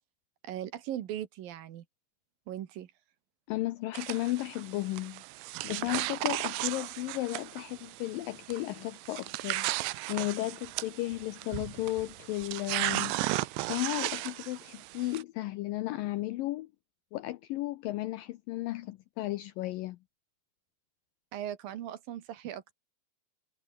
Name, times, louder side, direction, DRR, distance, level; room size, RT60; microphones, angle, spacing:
voice 1, 0.4-1.8 2.5-2.9 21.3-22.7, right 11 dB, 65° right, 2.9 m, -39 dB
voice 2, 3.5-5.2 5.6-13.2 13.7-16.7 17.1-20.0, left 17 dB, 85° left, 1.9 m, -34 dB
sound 1, 3.9-15.2, right 20 dB, 90° right, 3.0 m, -36 dB
omnidirectional pair, 4.9 m